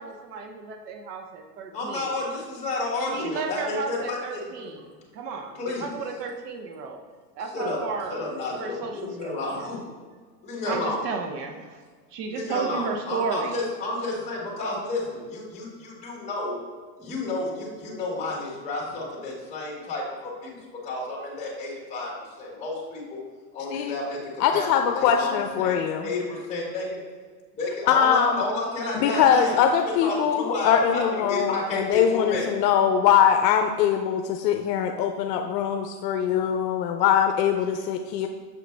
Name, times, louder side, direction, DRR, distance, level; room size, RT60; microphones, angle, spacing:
voice 1, 0.0-2.1 3.1-4.8 5.1-7.0 7.4-8.2 8.6-9.8 10.6-11.8 12.1-13.6, right 5 dB, 70° right, 4 dB, 0.9 m, -33 dB
voice 2, 1.7-4.4 5.5-6.0 7.5-7.8 8.1-9.8 10.4-11.0 12.3-16.6 17.0-23.2 23.5-27.0 27.6-32.5, left 2 dB, 15° left, -4 dB, 1.7 m, -31 dB
voice 3, 24.4-26.1 27.9-28.4 29.0-38.3, left 8 dB, 75° left, 5 dB, 0.6 m, -22 dB
6.8 x 5.1 x 3.3 m, 1.5 s
supercardioid pair, 135°, 50 cm